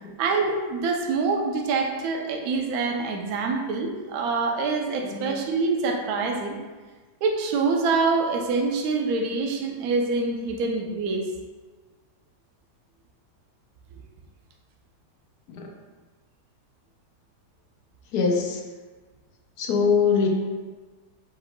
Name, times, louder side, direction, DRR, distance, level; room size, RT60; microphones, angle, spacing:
voice 1, 0.2-6.6 7.2-11.2, right 4 dB, 70° right, 2 dB, 1.0 m, -25 dB
voice 2, 18.1-18.6 19.6-20.3, left 5 dB, 75° left, 1 dB, 1.2 m, -23 dB
4.8 x 4.6 x 2.2 m, 1.3 s
omnidirectional pair, 1.8 m